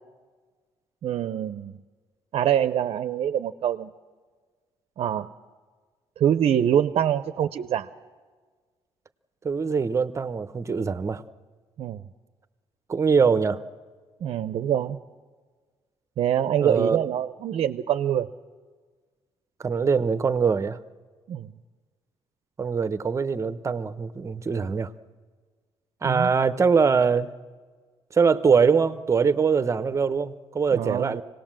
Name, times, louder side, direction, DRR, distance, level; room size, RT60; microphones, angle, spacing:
voice 1, 1.0-1.7 2.3-3.9 5.0-5.3 6.2-7.9 11.8-12.0 14.2-15.0 16.2-18.3 21.3-21.5 26.0-26.3 30.7-31.2, right 10 dB, 65° right, 12 dB, 0.7 m, -25 dB
voice 2, 9.4-11.2 12.9-13.6 16.6-17.0 19.6-20.8 22.6-24.9 26.0-27.3 28.1-31.2, right 5 dB, 30° right, 13 dB, 0.9 m, -23 dB
25.5 x 18.5 x 7.5 m, 1.5 s
cardioid pair, 120°, 10 cm